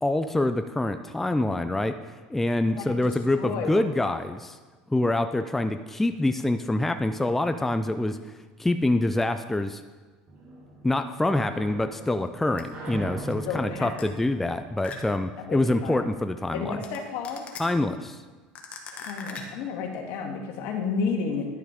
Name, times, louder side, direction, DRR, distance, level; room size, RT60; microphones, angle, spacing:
voice 1, 0.0-2.0 2.3-4.6 4.9-8.2 8.6-9.8 10.8-16.8 17.6-18.2, left 2 dB, 5° left, 8 dB, 0.4 m, -26 dB
voice 2, 3.4-4.1 13.5-14.1 15.5-16.0 16.5-17.4 18.9-21.5, left 5 dB, 70° left, 2 dB, 1.8 m, -31 dB
sound 1, 10.3-15.7, right 2 dB, 50° right, 3.1 m, -41 dB
sound 2, 12.6-12.7 14.0-14.1 14.8-15.2 16.8-17.0 17.2-17.6 18.5-19.7, left 5 dB, 35° left, 1.5 m, -39 dB
11.5 x 6.6 x 5.1 m, 1.3 s
supercardioid pair, 110°, 4 cm